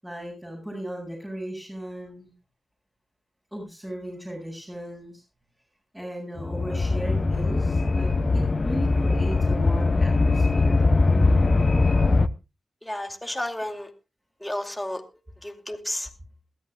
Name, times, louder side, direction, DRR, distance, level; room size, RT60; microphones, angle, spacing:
voice 1, 0.0-2.3 3.5-5.2 5.9-10.8, right 1 dB, 15° right, -4 dB, 7.5 m, -36 dB
sound 1, 6.4-12.3, left 3 dB, 40° left, 0.8 m, -21 dB
voice 2, 12.8-13.9 14.4-15.0 15.4-16.1, left 1 dB, 10° left, 4 dB, 2.4 m, -32 dB
22.0 x 14.0 x 2.3 m, 0.28 s
cardioid pair, 75°, 0 cm